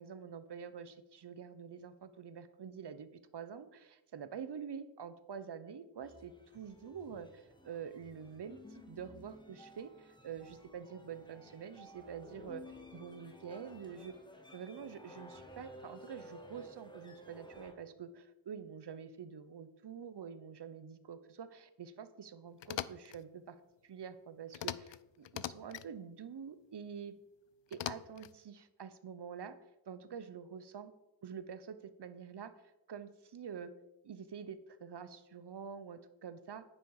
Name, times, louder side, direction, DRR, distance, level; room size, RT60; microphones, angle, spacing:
voice 1, 0.0-12.6 12.9-14.2 14.5-23.6 23.8-27.1 27.7-29.5 29.9-30.9 31.2-32.5 32.9-33.7 34.0-36.6, right 7 dB, 60° right, 12 dB, 1.0 m, -47 dB
sound 1, 6.0-17.7, left 1 dB, 10° left, 1.8 m, -55 dB
sound 2, 22.6-23.2 24.5-25.0 25.2-25.9 27.7-28.4, left 11 dB, 70° left, 0.6 m, -41 dB
10.0 x 10.0 x 4.9 m, 0.93 s
wide cardioid pair, 115°, 45 cm